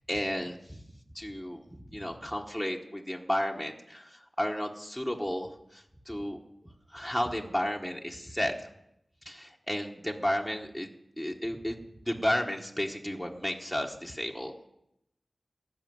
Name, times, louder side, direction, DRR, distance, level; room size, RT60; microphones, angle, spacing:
voice 1, 0.1-0.8 1.1-6.4 6.9-8.7 9.2-10.9 11.2-14.7, equal, ahead, 1 dB, 1.1 m, -33 dB
14.5 x 5.7 x 9.3 m, 0.83 s
wide cardioid pair, 65°, 0 cm